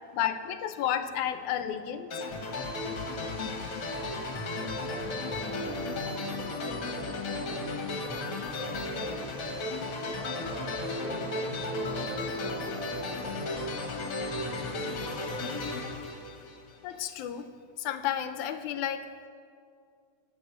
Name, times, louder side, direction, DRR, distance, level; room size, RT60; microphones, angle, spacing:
voice 1, 0.1-2.2 16.8-17.5 17.8-19.3, left 10 dB, 85° left, 9 dB, 2.2 m, -32 dB
sound 1, 2.1-16.9, left 2 dB, 50° left, 2.1 m, -34 dB
voice 2, 2.1-9.3 10.1-13.5 14.3-15.6, right 2 dB, 55° right, 1 dB, 2.9 m, -45 dB
12.5 x 10.0 x 8.2 m, 2.3 s
omnidirectional pair, 3.4 m